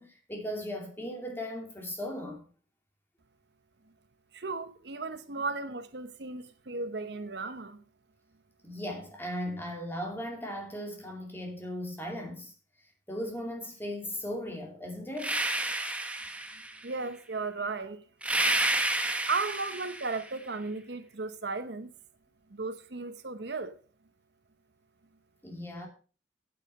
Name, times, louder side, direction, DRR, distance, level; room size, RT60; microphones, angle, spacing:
voice 1, 0.0-2.4 8.6-12.5 13.1-15.4 25.4-25.9, equal, 10° left, 2.6 m, -37 dB
voice 2, 4.3-7.8 16.8-18.0 19.3-21.9 22.5-23.8, right 3 dB, 65° right, 0.9 m, -35 dB
sound 1, 15.2-16.8 18.2-20.3, right 2 dB, 5° right, 1.0 m, -30 dB
8.9 x 8.6 x 5.5 m
head